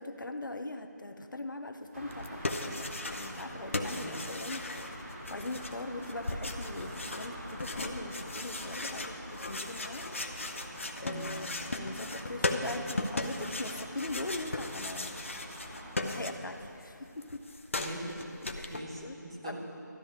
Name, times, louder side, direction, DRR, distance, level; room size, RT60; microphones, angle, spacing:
voice 1, 0.0-4.6 5.3-10.1 11.0-11.5 11.7-15.2 16.0-17.4 18.6-19.2 19.4-19.6, left 2 dB, 90° left, 6 dB, 1.0 m, -41 dB
sound 1, 1.9-16.2, equal, 45° right, 2.0 m, -46 dB
sound 2, 2.1-3.5 3.7-16.7 17.0-18.8, left 2 dB, 40° left, 0.7 m, -37 dB
voice 2, 3.8-4.2 11.1-11.5 17.8-19.6, right 1 dB, 15° right, -2 dB, 0.7 m, -43 dB
12.5 x 11.5 x 5.0 m, 2.8 s
figure-of-eight pair, 175°, 10 cm